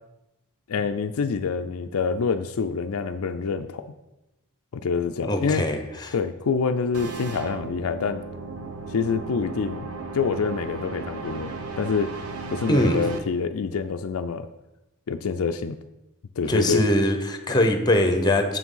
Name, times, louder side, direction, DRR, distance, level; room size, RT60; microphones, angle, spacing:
voice 1, 0.7-3.8 4.7-5.7 6.1-8.2 8.9-12.1 12.5-14.5 15.1-15.8 16.4-16.8, left 5 dB, 70° left, 8 dB, 0.4 m, -26 dB
voice 2, 5.3-6.1 12.7-13.0 16.5-18.6, left 1 dB, 20° left, 6 dB, 0.9 m, -22 dB
sound 1, 6.9-13.2, right 4 dB, 80° right, 0.9 m, -35 dB
7.3 x 6.0 x 5.6 m, 0.95 s
head